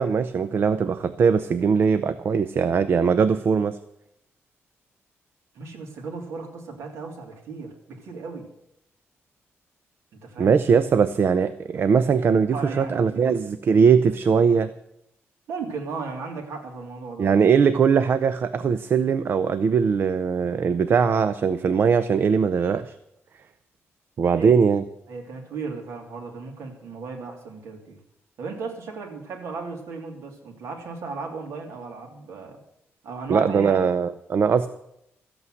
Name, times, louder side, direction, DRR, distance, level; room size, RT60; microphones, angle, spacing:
voice 1, 0.0-3.8 10.4-14.7 17.2-22.9 24.2-24.8 33.3-34.7, right 6 dB, 50° right, 12 dB, 0.6 m, -20 dB
voice 2, 5.5-8.5 10.1-10.6 12.5-13.4 15.5-17.4 24.3-24.5 25.1-28.0 28.4-32.6 33.0-33.9, right 4 dB, 85° right, 1 dB, 2.9 m, -36 dB
14.0 x 8.4 x 7.8 m, 0.79 s
cardioid pair, 135°, 5 cm